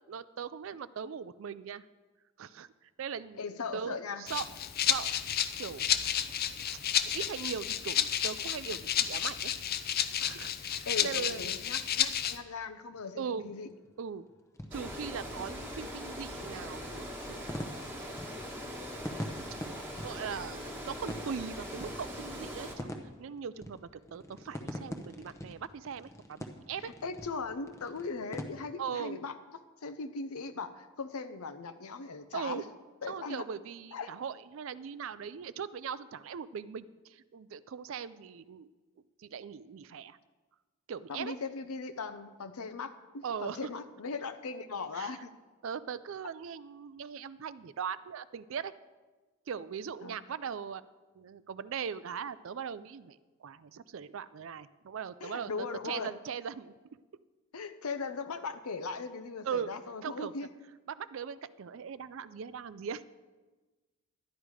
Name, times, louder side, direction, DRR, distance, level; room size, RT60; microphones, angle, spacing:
voice 1, 0.1-1.9 2.4-2.7 3.0-3.4 3.7-4.5 4.8-5.1 5.6-6.1 7.1-9.5 10.2-11.6 13.2-13.5 14.0-14.3 14.7-17.6 18.0-18.3 20.0-22.9 23.2-26.9 28.8-29.2 32.3-32.7 33.1-38.7 39.2-40.2 40.9-41.3 43.2-43.7 44.9-45.2 45.6-48.7 49.5-50.8 51.2-53.2 53.4-56.7 59.4-59.7 60.0-60.3 60.9-63.0, right 7 dB, 60° right, 15 dB, 0.4 m, -40 dB
voice 2, 3.4-4.2 10.8-13.7 26.8-29.3 29.8-32.6 33.0-33.4 33.9-34.1 41.1-45.3 50.0-50.2 55.2-56.1 57.5-60.5, left 4 dB, 80° left, 9 dB, 0.7 m, -39 dB
Rattle (instrument), 4.3-12.4, left 9 dB, 45° left, 0.5 m, -31 dB
sound 1, 12.2-28.4, equal, 15° left, 0.8 m, -45 dB
Water, 14.7-22.8, equal, 10° right, 1.5 m, -41 dB
11.5 x 11.0 x 4.8 m, 1.2 s
head